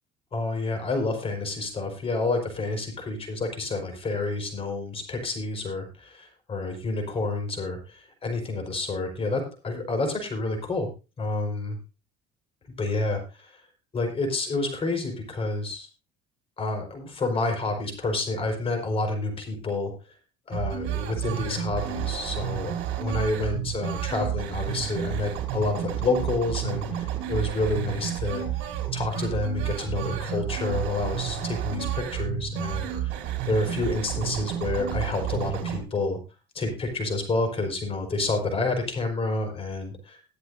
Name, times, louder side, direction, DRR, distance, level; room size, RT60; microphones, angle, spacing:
voice 1, 0.3-10.9 11.2-11.8 12.8-13.5 13.9-15.9 16.6-19.9 20.5-22.7 23.0-28.7 28.9-33.1 33.4-36.2 36.5-40.2, left 2 dB, 30° left, 4 dB, 4.8 m, -29 dB
sound 1, 20.5-35.8, right 10 dB, 75° right, 3.8 m, -31 dB
22.0 x 7.9 x 2.7 m, 0.30 s
cardioid pair, 140°, 20 cm